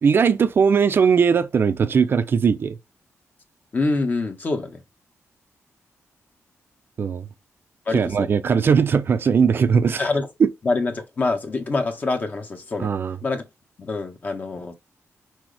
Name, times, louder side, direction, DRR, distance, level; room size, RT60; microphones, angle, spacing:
voice 1, 0.0-2.8 7.0-7.3 7.9-10.0 10.4-10.5 12.8-13.2, right 6 dB, 45° right, 0.6 m, -19 dB
voice 2, 3.7-4.8 7.8-8.3 10.0-10.3 10.6-12.9 13.2-13.4 13.8-14.7, left 3 dB, 35° left, 1.3 m, -25 dB
6.2 x 5.1 x 3.4 m
wide cardioid pair, 170°, 5 cm